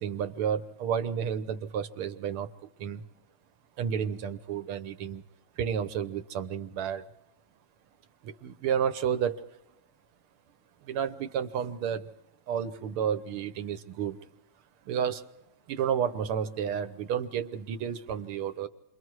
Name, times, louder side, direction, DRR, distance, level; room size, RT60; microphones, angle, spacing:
voice 1, 0.0-2.5 2.8-3.0 3.8-5.2 5.6-7.1 8.2-9.5 10.8-12.1 12.5-14.2 14.9-15.3 15.7-18.7, right 8 dB, 85° right, 10 dB, 1.9 m, -31 dB
28.0 x 23.0 x 4.7 m, 0.93 s
omnidirectional pair, 2.3 m